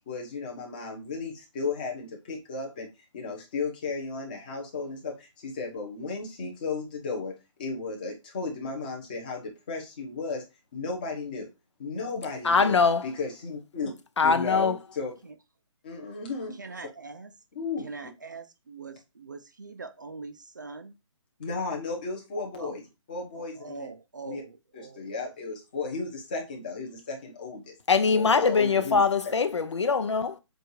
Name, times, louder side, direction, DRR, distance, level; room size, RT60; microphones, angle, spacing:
voice 1, 0.1-2.9 3.1-10.4 10.7-11.5 11.8-12.7 13.0-13.9 14.2-15.1 15.8-16.6 17.5-18.1 21.4-22.8 23.1-23.9 24.2-24.4 24.7-27.7 28.1-29.3, left 4 dB, 15° left, 1.1 m, -34 dB
voice 2, 12.4-13.1 14.2-14.8 27.9-30.4, left 5 dB, 60° left, 0.8 m, -22 dB
voice 3, 16.6-17.3 17.8-20.9 22.6-22.8 23.4-25.1, right 4 dB, 35° right, 0.5 m, -42 dB
7.8 x 2.6 x 4.7 m
hypercardioid pair, 175°, 17 cm